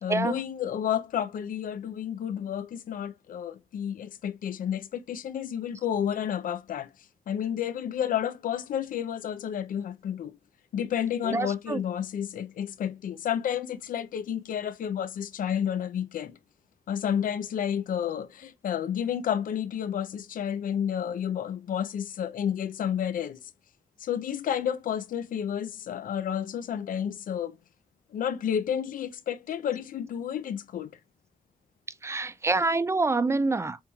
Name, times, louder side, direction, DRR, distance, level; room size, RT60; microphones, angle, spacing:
voice 1, 0.0-6.9 7.3-10.4 10.7-16.4 16.9-23.4 24.0-27.6 28.1-30.9, left 9 dB, 90° left, 0.5 m, -31 dB
voice 2, 11.2-11.8 32.0-33.8, right 3 dB, 20° right, 0.3 m, -26 dB
7.1 x 3.0 x 2.3 m
wide cardioid pair, 130°, 14 cm